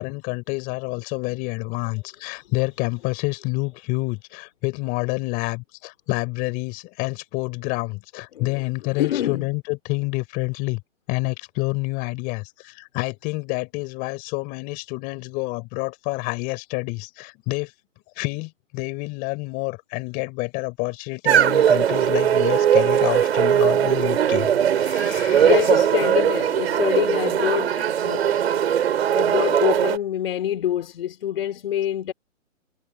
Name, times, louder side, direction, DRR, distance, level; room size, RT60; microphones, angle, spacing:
voice 1, 0.0-10.8 11.1-17.7 18.2-25.7, left 26 dB, 20° left, 5.0 m, -28 dB
voice 2, 9.0-9.5 24.9-32.1, left 11 dB, 45° left, 3.5 m, -26 dB
sound 1, 21.2-30.0, right 9 dB, 50° right, 7.7 m, -20 dB
hypercardioid pair, 155°, 39 cm